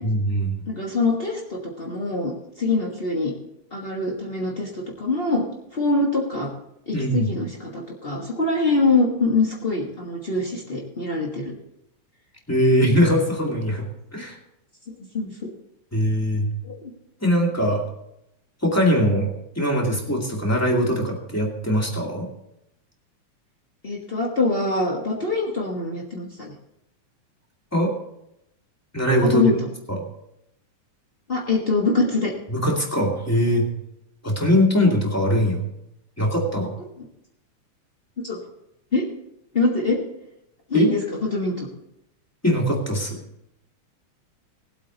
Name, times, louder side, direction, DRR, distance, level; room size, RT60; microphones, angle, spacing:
voice 1, 0.0-0.6 6.9-7.3 12.5-13.9 14.1-14.4 15.9-16.5 17.2-17.8 18.6-19.3 19.6-22.3 27.7-27.9 28.9-29.6 29.9-30.0 32.5-33.7 34.2-35.6 36.2-36.8 40.7-40.9 42.4-43.2, equal, 5° left, -1 dB, 1.8 m, -21 dB
voice 2, 0.7-3.3 3.7-5.4 5.7-6.5 6.9-11.5 15.1-15.5 16.6-16.9 23.8-26.5 29.3-29.7 31.3-32.3 38.2-38.4 38.9-39.0 39.5-40.0 40.7-41.0 41.3-41.7, left 3 dB, 50° left, -2 dB, 0.6 m, -24 dB
19.5 x 8.2 x 4.0 m, 0.81 s
omnidirectional pair, 3.5 m